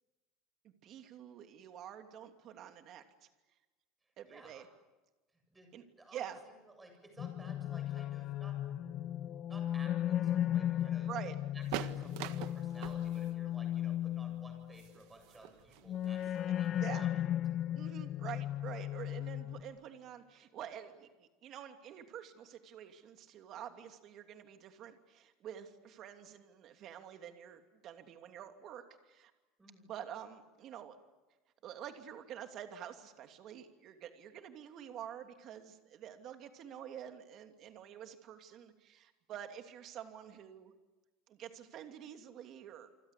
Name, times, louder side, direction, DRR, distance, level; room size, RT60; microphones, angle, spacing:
voice 1, 0.6-3.0 4.2-4.7 5.7-5.8 6.1-6.4 11.1-11.3 16.8-17.1 17.8-29.3 29.9-31.0 31.6-40.7 41.3-42.9, right 10 dB, 40° right, 6 dB, 2.8 m, -48 dB
voice 2, 4.2-4.6 5.3-6.2 6.8-8.6 9.5-11.1 11.5-17.1 29.6-29.9, right 2 dB, 10° right, 4 dB, 8.0 m, -56 dB
sound 1, 7.2-14.8 15.9-19.6, left 11 dB, 40° left, 1.4 m, -36 dB
sound 2, 11.6-16.8, right 14 dB, 65° right, 1.6 m, -45 dB
28.5 x 25.0 x 8.4 m, 1.1 s
cardioid pair, 155°, 0 cm